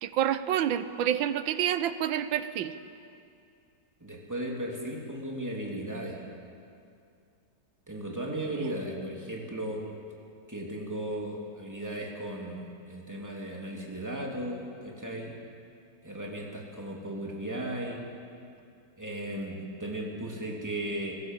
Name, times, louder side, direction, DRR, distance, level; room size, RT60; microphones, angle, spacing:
voice 1, 0.0-2.7 8.6-8.7, right 10 dB, 85° right, 12 dB, 1.6 m, -28 dB
voice 2, 4.0-6.3 7.9-9.8 10.5-15.3 16.0-18.1 19.0-21.2, right 1 dB, 10° right, -1 dB, 2.8 m, -36 dB
23.5 x 16.0 x 7.5 m, 2.5 s
omnidirectional pair, 2.1 m